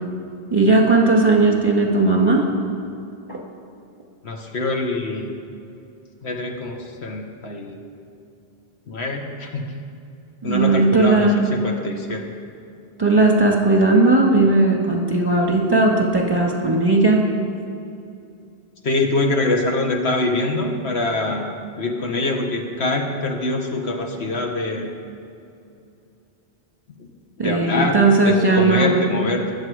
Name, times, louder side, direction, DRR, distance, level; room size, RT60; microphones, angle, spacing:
voice 1, 0.5-2.5 3.3-3.4 10.4-11.6 13.0-17.2 27.4-29.0, right 2 dB, 20° right, 0 dB, 1.8 m, -17 dB
voice 2, 4.2-5.3 6.2-7.8 8.9-9.7 10.4-12.2 18.8-24.9 27.0-27.1 27.4-29.5, left 2 dB, 75° left, 3 dB, 1.6 m, -24 dB
22.0 x 7.4 x 4.9 m, 2.6 s
omnidirectional pair, 1.1 m